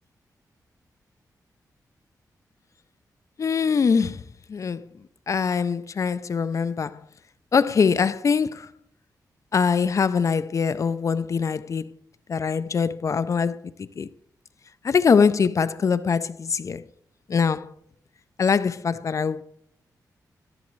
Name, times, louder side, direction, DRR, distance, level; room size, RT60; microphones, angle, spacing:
voice 1, 3.4-4.2 4.5-4.9 5.3-7.0 7.5-8.7 9.5-11.9 12.3-14.1 14.8-16.8 17.3-17.7 18.4-19.4, left 6 dB, 50° left, 0.4 m, -23 dB
14.5 x 7.0 x 3.1 m
wide cardioid pair, 95°, 7 cm